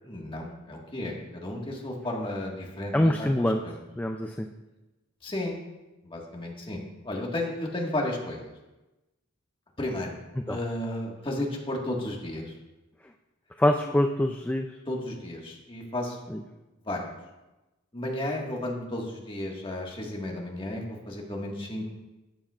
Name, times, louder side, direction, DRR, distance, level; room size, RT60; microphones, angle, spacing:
voice 1, 0.0-3.7 5.2-5.6 6.0-8.5 9.8-10.2 10.5-12.5 14.9-16.5 16.8-17.2 17.9-21.9, left 1 dB, 25° left, -1 dB, 1.6 m, -33 dB
voice 2, 2.9-3.6 4.0-4.5 10.5-10.6 13.6-14.7 16.3-16.4, left 1 dB, 10° left, 4 dB, 0.3 m, -24 dB
13.0 x 8.7 x 2.4 m, 1.0 s
head